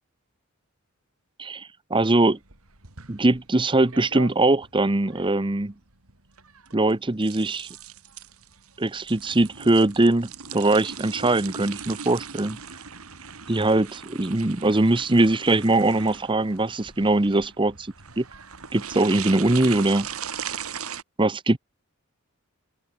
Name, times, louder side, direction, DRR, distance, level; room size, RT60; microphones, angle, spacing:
voice 1, 1.4-2.4 3.1-5.7 6.7-7.7 8.8-12.6 13.5-18.2 18.7-20.1 21.2-21.6, right 2 dB, 20° right, 0.8 m, -22 dB
sound 1, 2.3-21.0, right 7 dB, 80° right, 3.4 m, -39 dB
open air
head